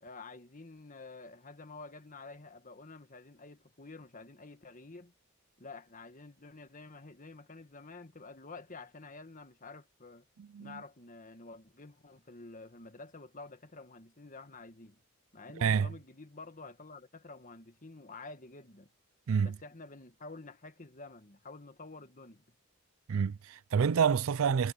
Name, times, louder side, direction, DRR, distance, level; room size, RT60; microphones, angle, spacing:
voice 1, 0.0-5.1 5.6-10.3 10.6-15.0 15.3-18.9 19.4-22.4, left 3 dB, 40° left, 1.7 m, -49 dB
voice 2, 10.4-10.8 15.6-15.9 19.3-19.5 23.1-24.7, right 6 dB, 85° right, 0.4 m, -28 dB
head